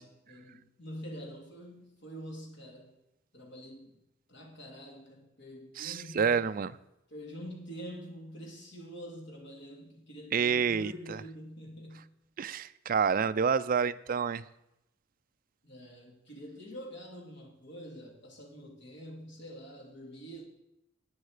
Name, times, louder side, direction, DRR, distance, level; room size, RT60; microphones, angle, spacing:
voice 1, 0.0-2.9 3.3-4.0 4.3-6.4 7.1-12.1 15.6-20.4, equal, 60° left, 2.8 m, -46 dB
voice 2, 5.8-6.8 10.3-11.2 12.4-14.4, right 6 dB, 45° right, 0.4 m, -28 dB
11.0 x 9.6 x 4.9 m
head